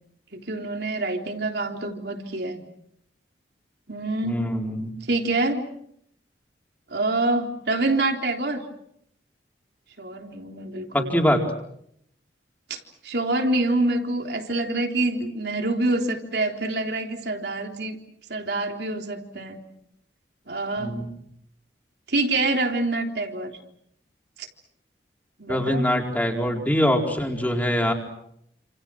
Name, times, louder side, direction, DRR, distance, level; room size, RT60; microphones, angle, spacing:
voice 1, 0.3-2.6 3.9-4.4 5.1-5.6 6.9-8.6 10.0-11.2 12.7-12.8 13.0-18.0 18.3-19.6 20.5-21.0 22.1-23.6 24.4-24.5 25.4-25.9, right 2 dB, 65° right, 3 dB, 3.7 m, -26 dB
voice 2, 4.2-5.0 10.9-11.4 20.8-21.1 25.5-27.9, equal, 10° left, 1 dB, 4.4 m, -23 dB
29.5 x 28.0 x 6.3 m, 0.73 s
head